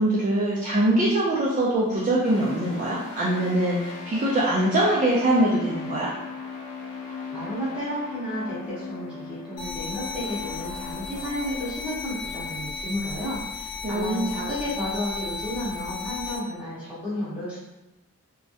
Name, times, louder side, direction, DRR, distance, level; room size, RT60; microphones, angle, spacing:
voice 1, 0.0-6.1 13.8-14.3, right 1 dB, 35° right, -6 dB, 0.3 m, -23 dB
sound 1, 2.2-12.8, left 5 dB, 90° left, 0.4 m, -38 dB
voice 2, 7.3-17.6, equal, 5° right, -10 dB, 0.8 m, -32 dB
sound 2, 9.6-16.4, left 5 dB, 45° left, 0.7 m, -35 dB
2.3 x 2.0 x 2.7 m, 1.0 s
head